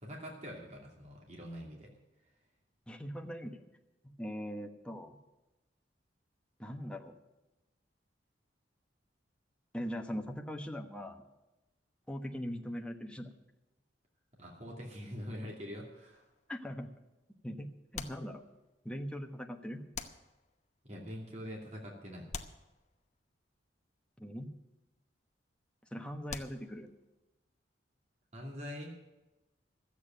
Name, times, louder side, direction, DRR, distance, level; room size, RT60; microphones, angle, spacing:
voice 1, 0.0-1.9 14.4-16.2 20.8-22.3 28.3-29.0, equal, 40° right, -1 dB, 2.6 m, -44 dB
voice 2, 2.9-3.6 4.0-5.2 6.6-7.1 9.7-11.2 12.1-13.3 16.5-16.9 17.4-18.4 18.8-19.8 24.2-24.5 25.9-26.9, equal, 5° left, 3 dB, 1.1 m, -41 dB
sound 1, 16.1-16.7 17.9-18.9 19.9-20.8 22.3-23.4 26.3-27.1, left 5 dB, 40° left, 0.9 m, -46 dB
13.0 x 8.4 x 9.0 m, 1.0 s
head